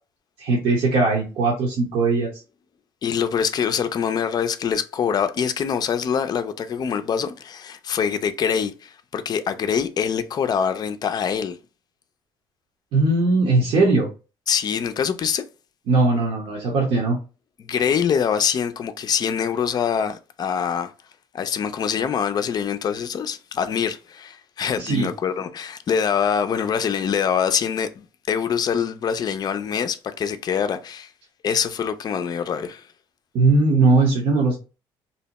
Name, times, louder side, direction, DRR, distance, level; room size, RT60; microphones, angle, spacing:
voice 1, 0.4-2.3 12.9-14.1 15.9-17.2 24.8-25.1 33.3-34.5, right 3 dB, 65° right, 0.9 m, -19 dB
voice 2, 3.0-11.6 14.5-15.4 17.6-20.9 21.3-31.1 31.4-32.9, left 7 dB, 40° left, 0.4 m, -24 dB
2.7 x 2.1 x 2.8 m
supercardioid pair, 80°, 10 cm